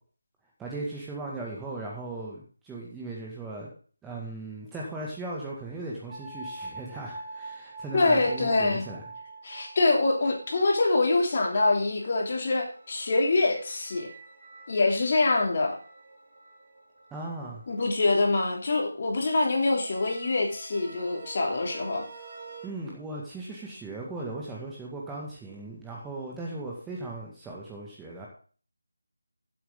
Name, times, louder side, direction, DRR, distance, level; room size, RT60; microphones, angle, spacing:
voice 1, 0.6-3.7 4.0-9.0 17.1-17.6 22.6-28.3, right 2 dB, 5° right, -4 dB, 2.0 m, -37 dB
sound 1, 6.1-17.8 19.6-22.7, right 3 dB, 30° right, 2.4 m, -46 dB
voice 2, 7.9-8.9 9.4-14.1 14.7-15.8 17.7-22.0, left 3 dB, 35° left, 1 dB, 3.0 m, -25 dB
16.0 x 7.9 x 3.8 m, 0.40 s
figure-of-eight pair, 160°, 0 cm